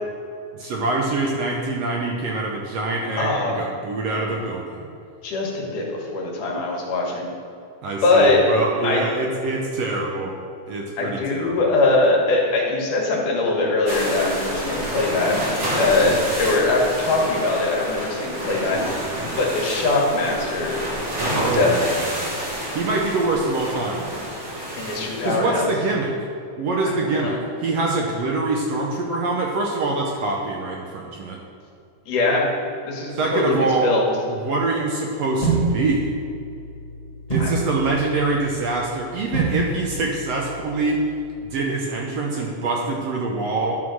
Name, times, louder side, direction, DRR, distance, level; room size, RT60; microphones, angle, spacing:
voice 1, 0.5-4.8 7.8-10.3 10.7-11.7 21.3-22.3 22.7-24.1 25.2-26.1 26.6-31.4 33.1-33.9 34.3-36.1 37.3-41.0 41.4-43.8, right 3 dB, 70° right, -1 dB, 1.6 m, -25 dB
voice 2, 3.2-3.6 5.2-5.8 6.1-7.3 8.0-8.4 8.8-9.0 11.0-18.9 19.4-20.8 21.5-21.9 24.8-25.7 26.8-27.4 32.1-32.5 32.8-33.6 33.8-34.1 37.4-37.5, left 2 dB, 80° left, -2 dB, 2.9 m, -21 dB
sound 1, 13.9-25.4, right 1 dB, 45° right, 2.0 m, -29 dB
sound 2, 35.4-41.5, right 3 dB, 20° left, 1.1 m, -28 dB
11.0 x 3.9 x 6.2 m, 2.6 s
omnidirectional pair, 3.6 m